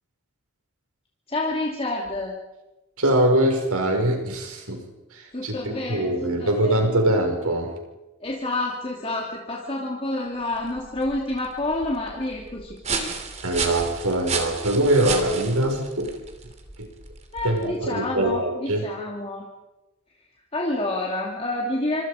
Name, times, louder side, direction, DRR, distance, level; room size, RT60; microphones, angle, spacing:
voice 1, 1.3-2.3 5.3-6.8 8.2-13.2 17.3-19.4 20.5-22.0, left 2 dB, 25° left, -3 dB, 2.8 m, -28 dB
voice 2, 3.0-4.8 5.1-7.7 13.4-16.1 16.8-16.9 17.4-18.9, right 1 dB, 85° right, 4 dB, 5.6 m, -23 dB
sound 1, 10.4-17.8, right 5 dB, 30° right, 2.9 m, -33 dB
27.5 x 25.5 x 5.1 m, 1.0 s
head